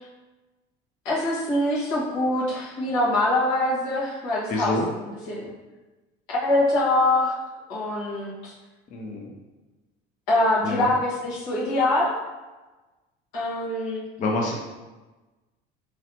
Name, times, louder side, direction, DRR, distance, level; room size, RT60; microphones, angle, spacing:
voice 1, 1.0-4.7 5.3-5.5 6.3-7.3 7.7-8.5 10.3-12.1 13.3-14.0, left 1 dB, 85° left, -6 dB, 1.4 m, -24 dB
voice 2, 4.5-4.9 8.9-9.3 10.6-10.9 14.2-14.5, left 2 dB, 40° left, -1 dB, 0.6 m, -27 dB
4.0 x 3.1 x 2.9 m, 1.2 s
cardioid pair, 120°, 20 cm